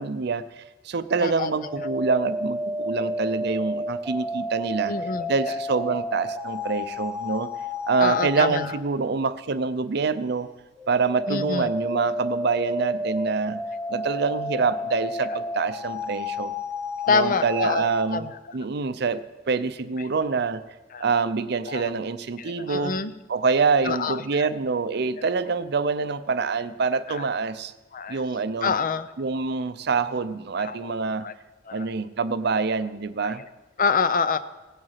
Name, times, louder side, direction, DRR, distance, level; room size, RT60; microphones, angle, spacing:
voice 1, 0.0-4.9 5.3-7.5 7.9-10.5 10.9-13.6 13.9-16.5 17.1-18.3 18.5-19.2 19.5-20.6 21.0-23.0 23.3-27.7 28.1-28.7 29.2-31.3 31.7-33.4, right 4 dB, 60° right, 13 dB, 0.6 m, -26 dB
voice 2, 1.2-1.5 1.8-1.9 4.9-5.6 8.0-8.7 11.3-11.7 17.0-18.4 20.0-20.1 20.9-21.1 21.7-21.9 22.4-23.1 23.8-24.5 27.1-27.2 27.9-28.2 28.6-29.1 30.6-30.9 31.2-31.3 31.7-31.9 33.2-33.5 33.8-34.4, left 5 dB, 45° left, 13 dB, 0.5 m, -27 dB
sound 1, 1.4-8.7 10.8-18.1, left 1 dB, 5° right, 1.1 m, -31 dB
17.0 x 7.9 x 5.7 m, 1.2 s
head